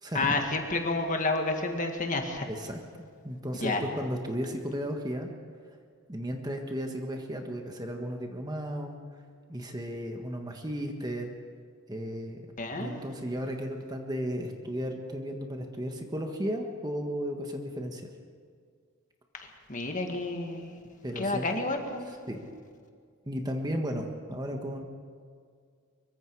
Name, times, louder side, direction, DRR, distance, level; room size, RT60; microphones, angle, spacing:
voice 1, 0.1-2.5 3.6-3.8 12.6-13.0 19.3-20.8 21.2-22.2, left 2 dB, 35° left, 4 dB, 1.9 m, -30 dB
voice 2, 2.5-5.3 6.1-9.0 9.5-11.3 11.9-12.4 12.7-18.1 21.0-21.5 22.3-22.4 23.2-24.8, equal, 20° right, 3 dB, 1.5 m, -34 dB
24.5 x 23.0 x 4.8 m, 2.1 s
head